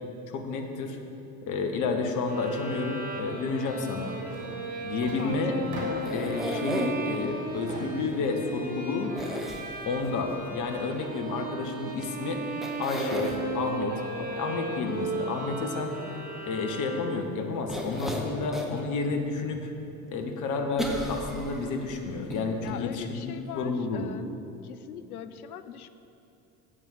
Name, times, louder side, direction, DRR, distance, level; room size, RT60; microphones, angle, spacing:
voice 1, 0.3-1.0 1.5-4.2 4.8-5.5 6.1-9.1 9.8-12.4 12.8-15.9 16.4-19.7 20.1-24.1, left 3 dB, 40° left, 4 dB, 1.2 m, -30 dB
sound 1, 2.3-17.4, right 2 dB, 20° right, 1.2 m, -36 dB
sound 2, 4.2-4.5 4.8-6.3 6.8-8.3, right 2 dB, 40° right, 2.2 m, -40 dB
voice 2, 5.7-6.1 22.6-24.3 24.6-25.9, left 9 dB, 75° left, 10 dB, 0.6 m, -41 dB
sound 3, 6.0-7.2 9.1-10.1 12.0-12.1 12.6-13.4 17.7-18.8 19.3-19.4 20.8-21.8 22.3-22.4 22.7-22.8, equal, ahead, 1.1 m, -34 dB
7.6 x 7.5 x 6.5 m, 2.8 s
figure-of-eight pair, 65°, 44 cm